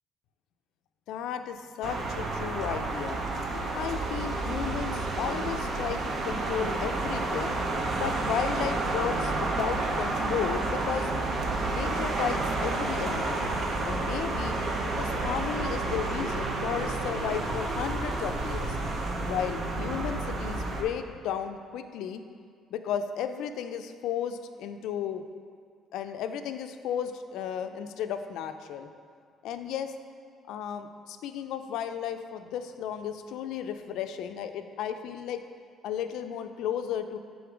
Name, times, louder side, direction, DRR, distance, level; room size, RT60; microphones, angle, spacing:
voice 1, 1.1-3.2 3.5-7.6 8.0-11.1 11.7-13.5 13.8-14.6 14.9-18.8 19.3-22.2 22.7-25.3 25.9-28.9 29.4-29.9 30.5-35.4 35.8-37.2, left 8 dB, 80° left, 8 dB, 0.3 m, -34 dB
sound 1, 1.8-20.8, right 2 dB, 40° right, 0.6 m, -30 dB
6.9 x 3.6 x 4.9 m, 2.2 s
cardioid pair, 150°, 0 cm